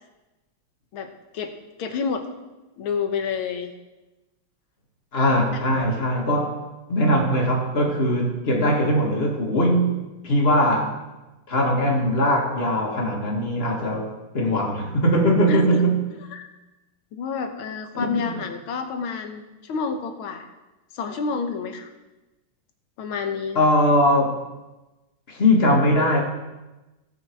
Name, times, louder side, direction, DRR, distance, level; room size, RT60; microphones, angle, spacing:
voice 1, 0.9-1.5 1.8-2.3 2.8-3.7 15.5-15.8 16.3-16.5 17.1-20.5 20.9-21.9 23.0-23.7, left 5 dB, 85° left, 6 dB, 1.9 m, -29 dB
voice 2, 5.1-6.6 6.9-10.9 11.5-16.0 17.9-18.2 23.6-24.5 25.3-26.2, equal, 30° left, 0 dB, 1.9 m, -21 dB
16.5 x 5.8 x 4.6 m, 1.1 s
omnidirectional pair, 2.2 m